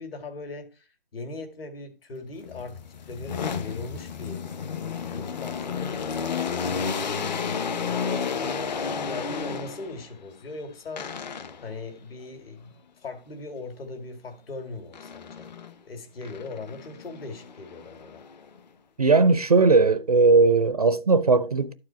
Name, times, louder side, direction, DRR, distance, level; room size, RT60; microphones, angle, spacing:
voice 1, 0.0-2.8 3.1-4.5 5.1-6.3 6.6-11.1 11.6-12.7 13.0-15.6 15.9-18.2, left 3 dB, 60° left, 2.3 m, -39 dB
sound 1, 2.4-10.1 11.0-11.8 14.9-15.7 16.2-18.6, left 6 dB, 40° left, 0.7 m, -32 dB
voice 2, 19.0-21.7, right 4 dB, 40° right, 0.4 m, -18 dB
12.0 x 4.8 x 4.4 m
hypercardioid pair, 155°, 32 cm